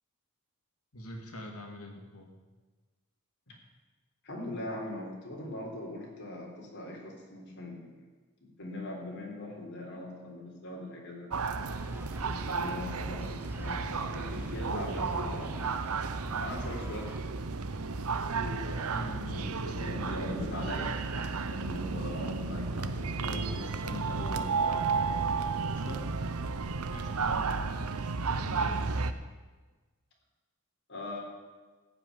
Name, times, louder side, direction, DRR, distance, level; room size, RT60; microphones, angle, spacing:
voice 1, 0.9-2.3 18.9-19.9 26.9-28.8, left 1 dB, 90° left, 2 dB, 2.5 m, -44 dB
voice 2, 4.2-7.9 8.4-11.3 12.2-15.8 16.4-17.1 18.4-21.0 21.5-25.4 25.7-26.0 30.9-31.2, left 1 dB, 55° left, -1 dB, 3.8 m, -41 dB
sound 1, 11.3-29.1, right 4 dB, 80° right, 0.8 m, -33 dB
sound 2, 11.7-17.2, right 1 dB, 10° right, 0.8 m, -44 dB
15.0 x 6.1 x 9.8 m, 1.3 s
head